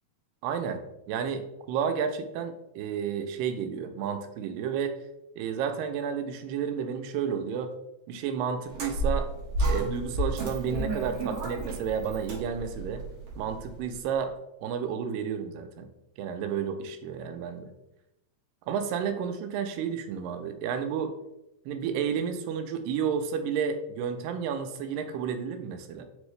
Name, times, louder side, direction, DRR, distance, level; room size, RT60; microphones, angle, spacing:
voice 1, 0.4-0.8 1.1-4.9 5.4-7.7 8.1-9.3 9.7-13.0 13.4-14.3 14.6-15.9 16.2-17.7 18.7-21.1 21.7-26.1, right 7 dB, 90° right, 7 dB, 2.2 m, -31 dB
sound 1, 8.7-13.9, right 2 dB, 65° right, 1.5 m, -31 dB
5.0 x 2.7 x 3.1 m, 0.89 s
omnidirectional pair, 3.9 m